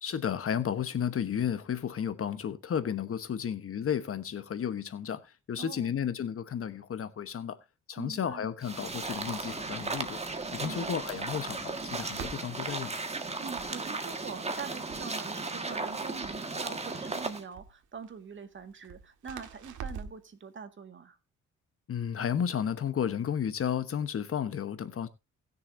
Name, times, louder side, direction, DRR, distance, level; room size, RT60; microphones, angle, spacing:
voice 1, 0.0-7.6 7.9-10.2 10.5-12.9 21.9-25.1, left 8 dB, 45° left, 1.1 m, -33 dB
voice 2, 5.6-5.9 8.0-8.5 10.6-10.9 13.4-21.2, right 6 dB, 40° right, 1.8 m, -44 dB
sound 1, 8.6-17.4, right 3 dB, 20° right, 1.7 m, -36 dB
Crackle, 8.7-20.3, right 7 dB, 75° right, 1.7 m, -49 dB
19.5 x 6.8 x 2.7 m
cardioid pair, 90°, 30 cm